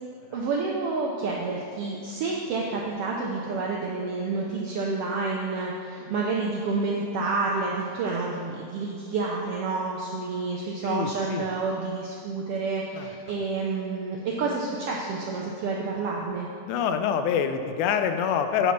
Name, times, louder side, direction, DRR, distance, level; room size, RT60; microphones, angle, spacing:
voice 1, 0.3-16.5, right 3 dB, 80° right, -3 dB, 1.3 m, -29 dB
voice 2, 10.8-11.5 12.9-13.1 16.7-18.7, left 7 dB, 90° left, 8 dB, 2.0 m, -26 dB
8.6 x 4.1 x 5.8 m, 2.3 s
omnidirectional pair, 3.4 m